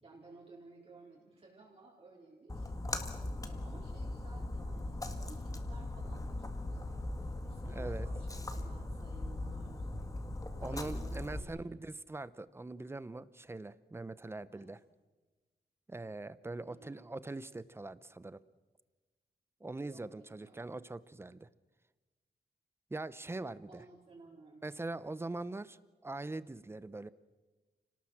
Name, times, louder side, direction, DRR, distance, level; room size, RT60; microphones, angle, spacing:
voice 1, 0.0-2.7 3.4-9.9 10.6-11.8 14.5-14.7 16.7-17.1 19.8-20.7 23.7-24.6, right 3 dB, 35° right, -3 dB, 4.4 m, -57 dB
Splash splatter, 2.5-11.4, left 2 dB, 20° left, 1.8 m, -39 dB
voice 2, 7.7-8.1 10.6-14.8 15.9-18.4 19.6-21.5 22.9-23.8 24.6-27.1, right 2 dB, 15° right, 17 dB, 0.7 m, -42 dB
29.5 x 18.5 x 7.3 m, 1.3 s
wide cardioid pair, 170°, 17 cm